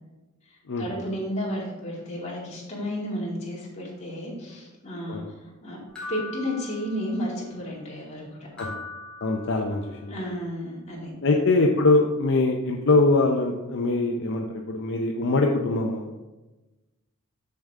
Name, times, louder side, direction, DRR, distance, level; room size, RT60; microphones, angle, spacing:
voice 1, 0.5-5.8 6.1-8.4 10.1-11.1, equal, 30° left, -5 dB, 2.4 m, -32 dB
sound 1, 6.0-7.4 8.6-10.0, left 2 dB, 5° left, 1.8 m, -40 dB
voice 2, 9.2-10.2 11.2-16.1, left 2 dB, 60° left, 1 dB, 0.6 m, -23 dB
6.9 x 6.7 x 3.6 m, 1.1 s
head